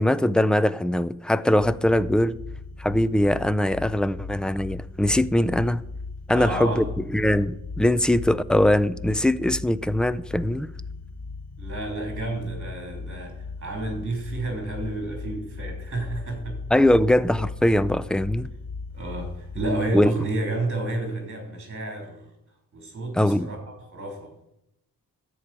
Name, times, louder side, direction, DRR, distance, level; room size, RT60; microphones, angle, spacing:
voice 1, 0.0-2.4 2.8-5.8 6.3-6.8 7.1-10.7 16.7-18.5 19.9-20.1 23.2-23.5, left 1 dB, ahead, 0.4 m, -21 dB
sound 1, 1.6-19.9, left 4 dB, 75° left, 1.3 m, -37 dB
voice 2, 6.3-6.9 11.6-16.6 18.9-22.3 22.7-24.3, right 2 dB, 35° right, 3.4 m, -31 dB
13.5 x 4.8 x 8.9 m
cardioid pair, 90°, 37 cm